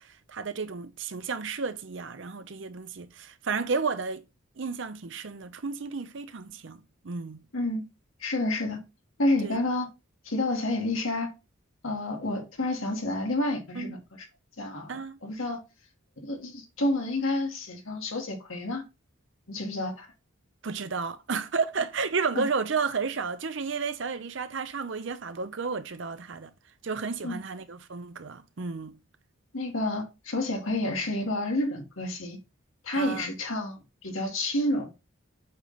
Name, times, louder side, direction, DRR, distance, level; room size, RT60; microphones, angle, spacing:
voice 1, 0.0-4.2 4.6-7.4 9.4-9.6 13.7-14.0 14.9-15.2 20.6-26.5 26.8-29.0 32.9-33.3, right 5 dB, 65° right, 0.7 m, -32 dB
voice 2, 7.5-7.8 8.2-8.8 9.2-9.9 10.3-11.3 11.8-14.0 14.6-15.6 16.2-18.8 19.5-20.1 22.4-22.5 27.2-27.4 29.5-32.4 32.8-34.9, left 1 dB, 85° left, 1.9 m, -29 dB
8.0 x 3.3 x 3.9 m
head